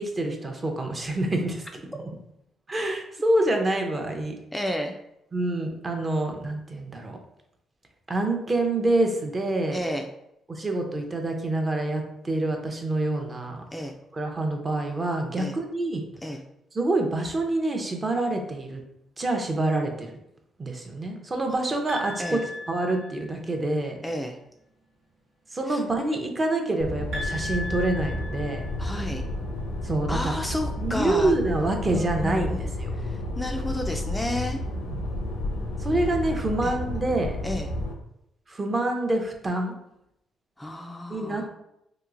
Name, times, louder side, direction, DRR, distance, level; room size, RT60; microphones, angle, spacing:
voice 1, 0.0-1.7 2.0-2.1 2.7-4.3 5.3-7.2 8.1-9.8 10.5-13.6 14.1-16.0 16.7-18.8 19.2-20.1 20.6-24.0 25.5-28.6 29.8-30.3 30.8-32.9 34.8-35.0 35.8-37.4 38.5-39.7 41.1-41.5, right 2 dB, 30° right, 3 dB, 0.6 m, -27 dB
voice 2, 4.5-4.9 9.7-10.1 13.7-14.0 15.4-15.5 16.2-16.4 22.2-22.4 24.0-24.4 25.7-25.8 28.8-29.2 30.1-31.3 31.9-34.6 36.6-36.8 37.4-37.7 40.6-41.5, left 1 dB, 10° left, 3 dB, 0.3 m, -31 dB
sound 1, 21.9-23.5 27.1-29.1, left 2 dB, 80° right, 1.0 m, -37 dB
sound 2, 26.8-37.9, left 1 dB, 85° left, 0.6 m, -31 dB
2.9 x 2.9 x 2.4 m, 0.80 s
cardioid pair, 90°, 0 cm